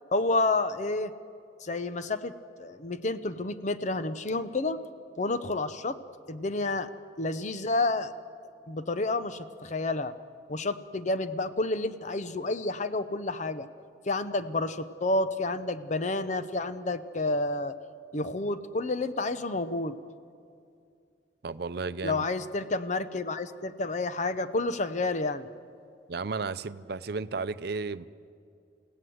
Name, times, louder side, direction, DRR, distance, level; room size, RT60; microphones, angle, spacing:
voice 1, 0.1-1.1 1.6-2.3 2.6-4.8 5.2-6.0 6.3-6.9 7.2-8.1 8.7-10.1 10.5-13.7 14.1-17.7 18.1-20.0 22.0-25.5, left 2 dB, 45° left, 11 dB, 0.7 m, -30 dB
voice 2, 21.4-22.2 26.1-28.1, right 4 dB, 65° right, 14 dB, 0.6 m, -33 dB
29.0 x 17.0 x 7.9 m, 2.4 s
head